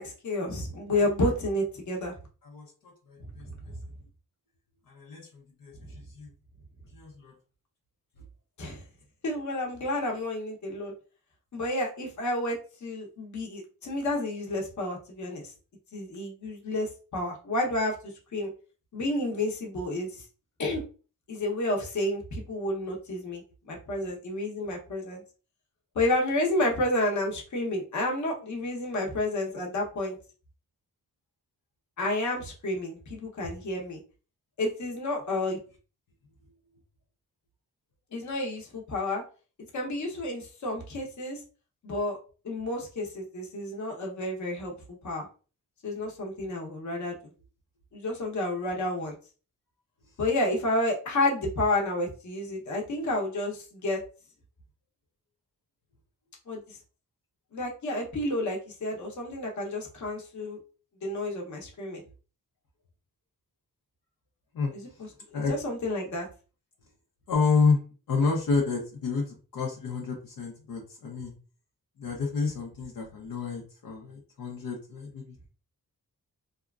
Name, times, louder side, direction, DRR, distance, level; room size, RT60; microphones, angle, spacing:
voice 1, 0.0-2.2 3.4-3.7 5.8-5.9 8.6-8.8 9.2-10.9 11.5-15.5 15.9-18.5 18.9-20.2 20.6-20.8 21.3-25.2 25.9-30.2 32.0-34.0 34.6-35.6 38.1-39.2 39.7-41.4 41.8-42.2 42.4-44.7 45.0-45.3 45.8-47.2 47.9-49.2 50.2-54.0 56.5-56.8 57.5-60.6 61.0-62.0 64.7-66.3, left 1 dB, 60° left, 0 dB, 0.9 m, -30 dB
voice 2, 2.5-3.4 4.9-6.3 6.9-7.3 64.5-64.7 65.3-65.5 67.3-67.8 68.1-71.3 72.0-75.4, left 4 dB, 85° left, -1 dB, 0.7 m, -29 dB
2.8 x 2.3 x 2.3 m, 0.36 s
cardioid pair, 75°, 33 cm